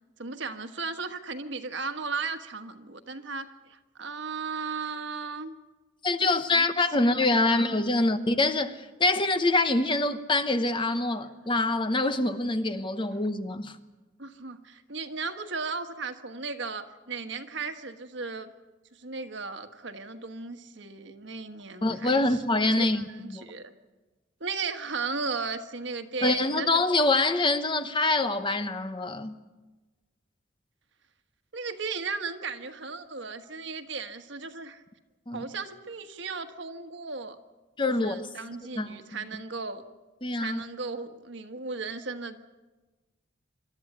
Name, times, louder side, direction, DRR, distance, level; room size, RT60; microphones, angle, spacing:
voice 1, 0.2-5.5 6.2-6.7 7.0-7.8 14.2-18.5 18.9-22.4 22.7-23.7 24.4-26.8 31.5-34.8 35.3-37.4 37.8-39.8 40.3-42.4, right 4 dB, 60° right, 1.4 m, -36 dB
voice 2, 6.0-13.7 21.8-23.4 26.2-29.4 35.3-35.4 37.8-38.3 38.8-39.0 40.2-40.6, left 2 dB, 25° left, 0.9 m, -25 dB
26.5 x 13.0 x 9.8 m
head